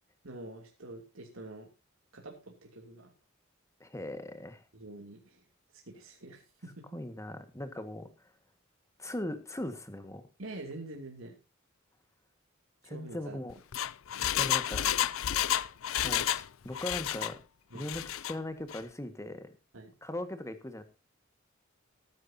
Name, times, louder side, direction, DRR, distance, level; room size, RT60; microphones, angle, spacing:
voice 1, 0.2-1.7 2.1-3.1 4.7-5.4 5.7-6.8 10.4-11.3 12.8-13.4 14.1-14.4 17.7-17.9 19.7-19.9, right 2 dB, 80° right, 1 dB, 2.9 m, -46 dB
voice 2, 3.8-4.6 6.9-8.1 9.0-10.2 12.9-13.5 14.4-14.9 16.0-17.4 17.7-19.5 20.0-20.8, left 1 dB, 15° left, 9 dB, 1.7 m, -39 dB
Engine, 13.5-16.5 16.7-17.3 17.8-18.3 18.7-18.8, left 11 dB, 80° left, 0.5 m, -30 dB
19.0 x 9.7 x 2.8 m, 0.28 s
head